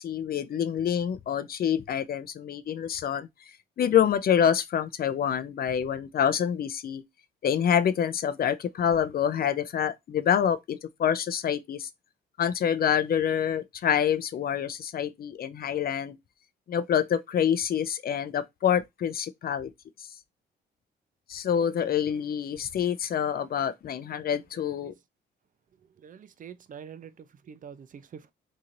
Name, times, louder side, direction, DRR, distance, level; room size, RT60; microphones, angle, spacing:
voice 1, 0.0-3.3 3.8-7.0 7.4-11.9 12.4-16.2 16.7-19.7 21.3-24.9, left 8 dB, 50° left, 0.5 m, -26 dB
voice 2, 24.5-25.0 25.8-28.3, right 7 dB, 40° right, 0.6 m, -46 dB
2.9 x 2.7 x 3.8 m
cardioid pair, 90°, 20 cm